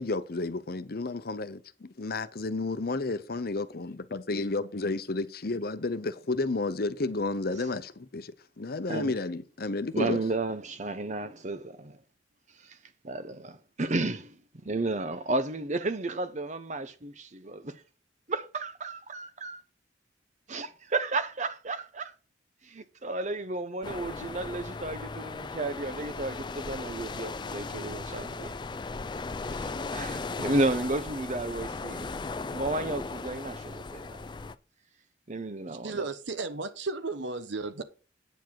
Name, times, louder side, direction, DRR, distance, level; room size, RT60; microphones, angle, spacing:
voice 1, 0.0-10.2, left 3 dB, 55° left, 0.8 m, -32 dB
voice 2, 9.9-12.0 12.6-12.8 13.0-17.8 18.3-19.6 20.5-22.1 22.6-28.5 29.5-32.1 32.5-34.2 35.3-36.1, right 2 dB, 40° right, 0.9 m, -33 dB
sound 1, 23.8-34.5, left 3 dB, 25° left, 0.4 m, -37 dB
voice 3, 35.7-37.8, right 3 dB, 70° right, 0.9 m, -34 dB
9.1 x 7.2 x 4.6 m
head